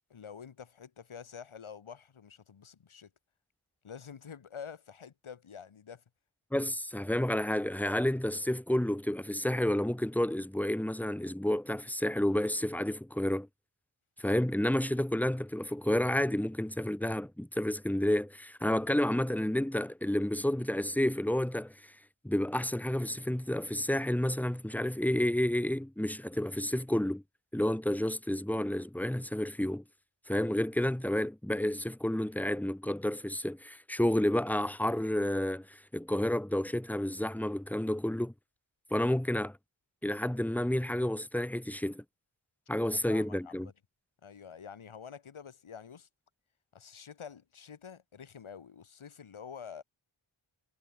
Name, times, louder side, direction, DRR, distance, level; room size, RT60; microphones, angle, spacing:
voice 1, 0.1-3.1 3.8-6.0 42.8-43.7 44.2-46.1 46.7-49.8, left 7 dB, 75° left, 1.5 m, -48 dB
voice 2, 6.5-13.5 14.2-21.9 22.2-27.2 27.5-29.8 30.3-38.3 38.9-39.6 40.0-42.0 42.7-43.7, left 1 dB, 5° left, 0.9 m, -30 dB
wide cardioid pair, 60°, 49 cm